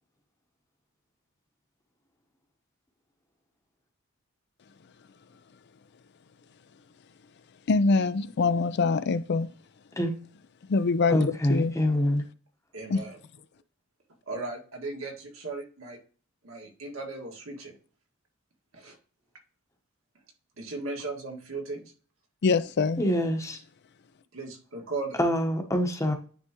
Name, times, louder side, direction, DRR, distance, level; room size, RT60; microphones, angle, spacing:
voice 1, 7.7-9.5 10.7-11.7 12.9-13.0 22.4-23.0, left 4 dB, 50° left, 0.4 m, -24 dB
voice 2, 11.1-12.2 23.0-23.6 25.2-26.1, equal, 15° left, 0.9 m, -25 dB
voice 3, 12.7-13.2 14.3-16.0 16.4-17.7 18.7-19.0 20.6-21.9 24.3-25.2, right 3 dB, 70° right, 1.9 m, -37 dB
9.7 x 3.5 x 2.9 m
head